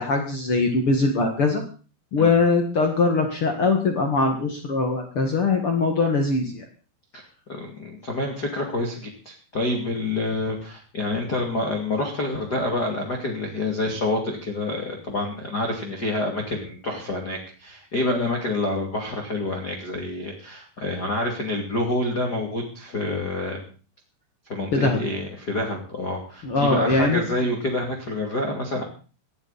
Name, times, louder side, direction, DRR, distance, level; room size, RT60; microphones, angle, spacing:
voice 1, 0.0-1.6 2.1-6.6 24.7-25.0 26.4-27.2, left 3 dB, 85° left, 4 dB, 1.2 m, -21 dB
voice 2, 7.5-23.7 24.5-28.8, left 2 dB, 30° left, -1 dB, 2.0 m, -27 dB
19.0 x 14.5 x 4.2 m, 0.38 s
omnidirectional pair, 5.8 m